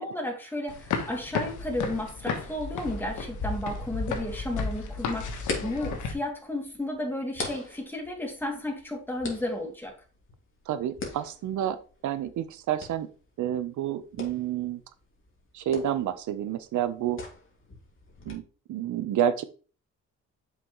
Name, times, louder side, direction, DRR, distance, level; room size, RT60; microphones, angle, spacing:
voice 1, 0.0-9.9, left 1 dB, 5° left, 0 dB, 2.5 m, -33 dB
sound 1, 0.7-6.1, left 5 dB, 75° left, 1.5 m, -33 dB
sound 2, 5.2-18.3, left 3 dB, 45° left, 2.5 m, -43 dB
voice 2, 10.7-11.8 12.0-13.1 13.4-14.8 15.5-17.2 18.3-18.4 18.7-19.4, right 10 dB, 75° right, 12 dB, 0.9 m, -29 dB
7.1 x 5.9 x 3.1 m, 0.37 s
cardioid pair, 90°, 30 cm